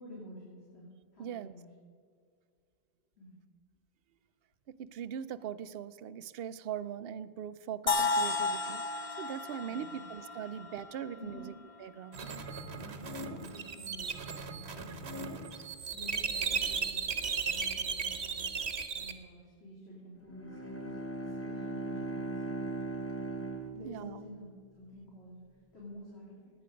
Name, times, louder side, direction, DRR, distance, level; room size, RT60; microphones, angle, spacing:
voice 1, 0.0-1.7 3.2-3.3 9.6-10.0 10.6-10.7 11.2-11.5 12.1-12.4 12.7-18.6 18.9-22.4 23.7-26.5, equal, 85° left, -6 dB, 3.3 m, -50 dB
voice 2, 1.2-1.5 4.8-8.8 9.2-11.5 11.8-12.2 23.8-24.2, right 9 dB, 70° right, 13 dB, 0.8 m, -40 dB
sound 1, 7.9-11.8, left 3 dB, 35° left, 0.9 m, -33 dB
sound 2, 12.1-19.1, right 5 dB, 90° right, 1.3 m, -36 dB
Bowed string instrument, 20.2-24.6, right 2 dB, 15° left, 1.0 m, -39 dB
18.0 x 9.9 x 5.1 m, 2.2 s
omnidirectional pair, 1.1 m